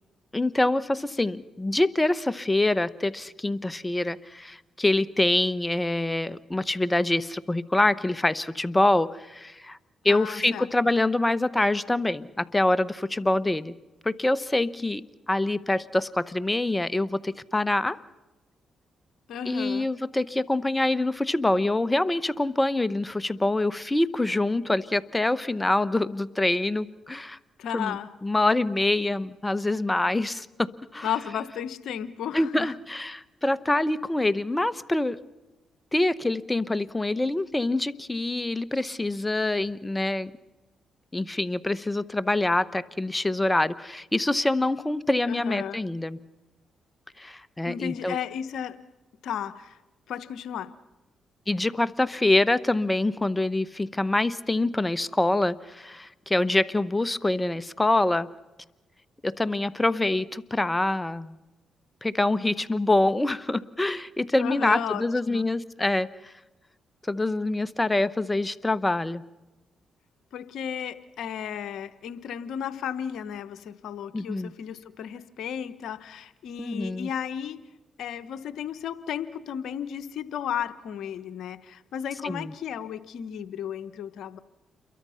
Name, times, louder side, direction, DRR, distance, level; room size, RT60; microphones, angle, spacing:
voice 1, 0.3-9.8 10.0-13.7 14.0-18.0 19.4-27.4 27.7-31.1 32.3-35.2 35.9-40.3 41.1-46.2 47.2-48.2 51.5-58.3 59.2-61.4 62.0-66.3 67.1-69.2 74.1-74.5 76.6-77.1 82.2-82.5, left 2 dB, 15° left, 16 dB, 1.1 m, -25 dB
voice 2, 10.1-10.7 19.3-19.9 27.6-28.1 31.0-32.7 45.3-45.8 47.7-48.8 49.2-49.8 50.1-50.7 64.4-65.5 70.3-77.6 78.0-84.4, left 9 dB, 75° left, 14 dB, 1.0 m, -34 dB
28.5 x 23.0 x 5.7 m, 1.1 s
supercardioid pair, 55°, 0 cm